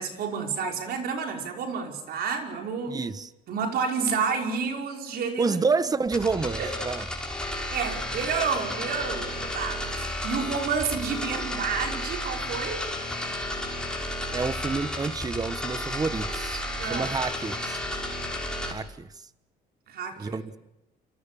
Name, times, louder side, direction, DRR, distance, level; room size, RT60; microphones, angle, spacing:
voice 1, 0.0-3.0 3.5-5.6 6.6-6.7 7.7-12.8 16.8-17.2 19.9-20.4, right 5 dB, 65° right, 5.6 m, -30 dB
voice 2, 2.9-3.3 5.4-7.0 14.3-17.8 18.7-19.1 20.2-20.6, right 4 dB, 20° right, 1.2 m, -29 dB
sound 1, 6.1-18.7, left 1 dB, 5° left, 6.0 m, -32 dB
28.5 x 24.0 x 7.1 m
cardioid pair, 110°, 17 cm